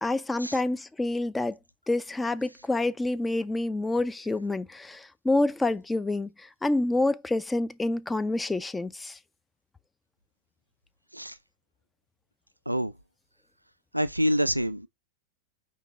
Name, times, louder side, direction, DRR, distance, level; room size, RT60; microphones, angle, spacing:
voice 1, 0.0-1.6 1.9-9.2, left 2 dB, 10° left, 0.3 m, -28 dB
voice 2, 13.9-14.9, equal, 90° right, 0.3 m, -26 dB
5.0 x 3.4 x 3.0 m
figure-of-eight pair, 90°, 0 cm